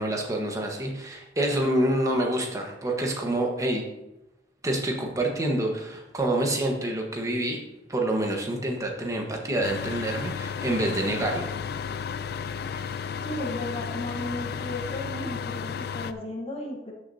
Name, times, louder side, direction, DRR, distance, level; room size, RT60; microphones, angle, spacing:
voice 1, 0.0-3.8 4.6-7.6 7.9-11.5 12.7-12.8, right 1 dB, 20° right, 1 dB, 1.3 m, -27 dB
sound 1, 9.6-16.1, left 6 dB, 60° left, 0.4 m, -33 dB
voice 2, 13.2-16.9, left 1 dB, 35° left, 0 dB, 1.3 m, -34 dB
13.0 x 6.5 x 2.8 m, 0.95 s
head